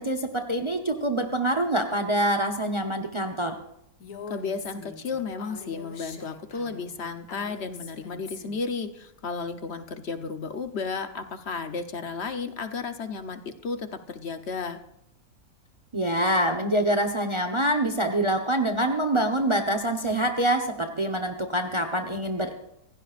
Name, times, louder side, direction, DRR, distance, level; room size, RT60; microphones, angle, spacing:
voice 1, 0.0-3.6 15.9-22.5, right 1 dB, 25° right, 5 dB, 0.9 m, -25 dB
Female speech woman speaking, 4.0-8.7, left 5 dB, 90° left, 1.9 m, -44 dB
voice 2, 4.3-14.8, left 4 dB, 50° left, 8 dB, 1.1 m, -33 dB
26.5 x 16.0 x 2.5 m, 0.79 s
omnidirectional pair, 1.6 m